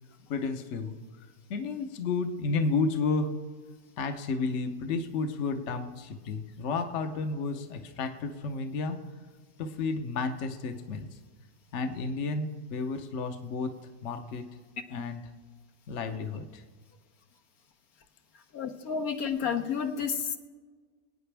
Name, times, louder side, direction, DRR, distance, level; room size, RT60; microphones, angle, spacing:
voice 1, 0.3-1.0 1.5-3.3 4.0-9.0 9.6-11.1 11.7-13.7 14.0-14.5 14.9-15.2 15.9-16.6, left 4 dB, 55° left, 7 dB, 1.1 m, -31 dB
voice 2, 18.5-20.4, left 6 dB, 75° left, 5 dB, 1.4 m, -30 dB
25.0 x 9.0 x 3.4 m, 1.5 s
omnidirectional pair, 1.6 m